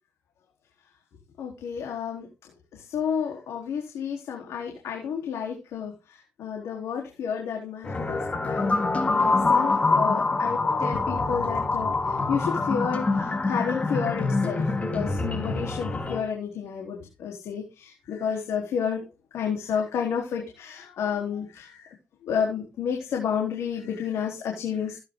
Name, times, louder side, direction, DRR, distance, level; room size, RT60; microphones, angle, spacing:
voice 1, 1.4-2.3 2.7-19.1 19.3-21.9 22.2-25.0, left 7 dB, 80° left, 0 dB, 4.0 m, -31 dB
sound 1, 7.8-16.2, left 3 dB, 30° left, 3.8 m, -25 dB
17.0 x 10.5 x 3.9 m, 0.29 s
cardioid pair, 95°, 5 cm